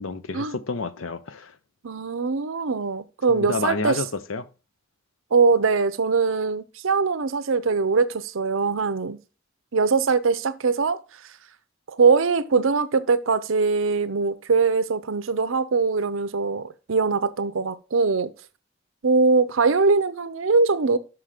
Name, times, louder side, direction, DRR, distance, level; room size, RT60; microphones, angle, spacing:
voice 1, 0.0-1.5 3.3-4.5, left 3 dB, 80° left, 0.7 m, -29 dB
voice 2, 1.8-4.0 5.3-9.2 9.7-11.0 11.9-18.3 19.0-21.0, right 4 dB, 75° right, 0.7 m, -22 dB
6.1 x 5.8 x 4.9 m
head